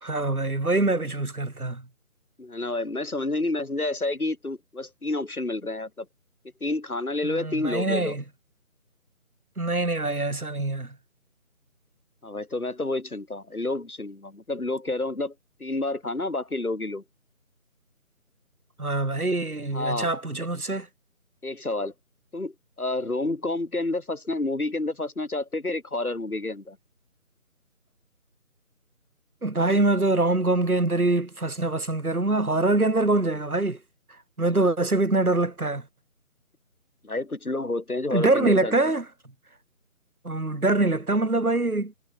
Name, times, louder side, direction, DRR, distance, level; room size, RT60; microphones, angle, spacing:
voice 1, 0.0-1.9 7.2-8.2 9.6-11.0 18.8-20.9 29.4-33.8 34.4-35.9 38.1-39.0 40.2-41.9, right 2 dB, 85° right, 4.1 m, -24 dB
voice 2, 2.4-6.1 6.6-8.1 12.2-15.3 15.6-17.0 19.7-20.1 21.4-21.9 22.3-26.8 37.0-38.7, left 2 dB, 85° left, 5.7 m, -29 dB
figure-of-eight pair, 165°, 43 cm